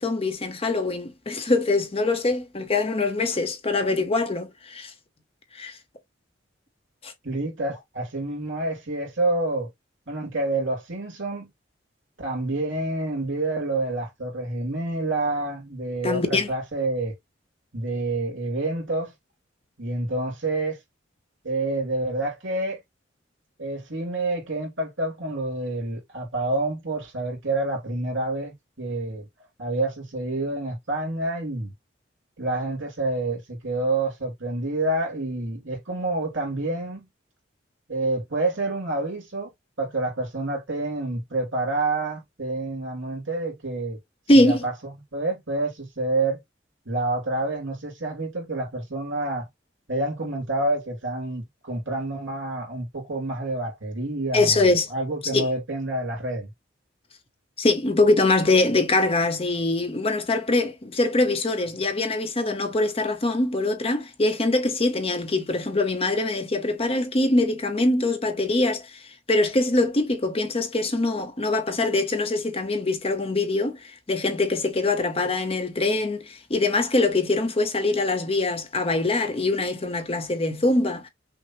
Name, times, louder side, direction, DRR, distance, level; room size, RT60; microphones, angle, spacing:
voice 1, 0.0-4.9 5.5-5.8 7.0-7.1 16.0-16.5 44.3-44.6 54.3-54.9 55.3-55.4 57.6-69.0 69.3-81.1, left 2 dB, 30° left, 0.8 m, -23 dB
voice 2, 7.2-9.7 10.1-11.5 12.2-17.1 17.7-19.1 19.8-20.8 21.4-22.8 23.6-29.3 29.6-31.7 32.4-37.0 37.9-39.5 39.8-44.0 44.3-46.4 46.9-49.5 49.9-56.5, right 2 dB, 85° right, 2.8 m, -28 dB
6.0 x 2.1 x 3.0 m
head